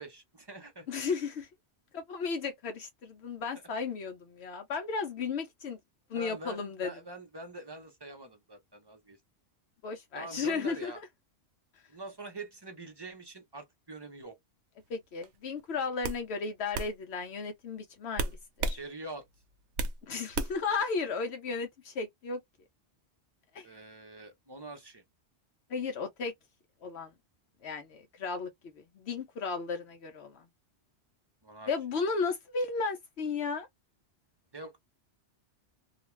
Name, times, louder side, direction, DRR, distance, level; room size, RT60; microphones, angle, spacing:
voice 1, 0.0-0.9 6.1-9.2 10.1-11.0 11.9-14.4 18.7-19.3 23.6-25.0 31.4-31.7 34.5-34.8, right 2 dB, 25° right, 0.7 m, -45 dB
voice 2, 0.9-1.5 1.9-5.8 6.1-6.9 9.8-10.9 14.9-18.3 18.6-18.8 20.0-22.4 23.5-23.7 25.7-26.3 26.8-27.1 27.6-28.5 28.8-30.4 31.7-33.7, left 4 dB, 70° left, 0.9 m, -34 dB
sound 1, 15.2-15.5 16.0-16.2 16.7-16.9 18.2-18.8 19.2-20.0 20.3-20.7, right 3 dB, 90° right, 0.9 m, -32 dB
2.4 x 2.3 x 3.1 m
omnidirectional pair, 1.2 m